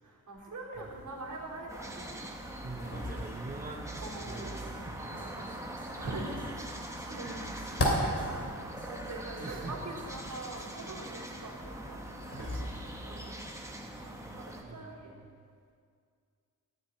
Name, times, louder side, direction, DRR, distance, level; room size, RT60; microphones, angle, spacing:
voice 1, 0.0-2.2 3.0-3.2 3.9-4.7 5.1-5.6 6.0-6.7 7.0-12.0 12.3-12.6 13.0-13.4 14.0-15.1, right 2 dB, 65° right, -4 dB, 3.7 m, -43 dB
sound 1, 0.7-13.3, equal, 40° left, 3.0 m, -39 dB
sound 2, 1.7-14.6, right 1 dB, 10° right, 1.4 m, -43 dB
voice 2, 2.6-5.5 9.4-9.8 12.4-12.8 13.8-15.2, right 3 dB, 25° right, 1 dB, 0.9 m, -45 dB
sound 3, 3.7-10.8, right 2 dB, 45° right, 3.6 m, -49 dB
14.5 x 7.4 x 9.4 m, 2.2 s
wide cardioid pair, 140°, 33 cm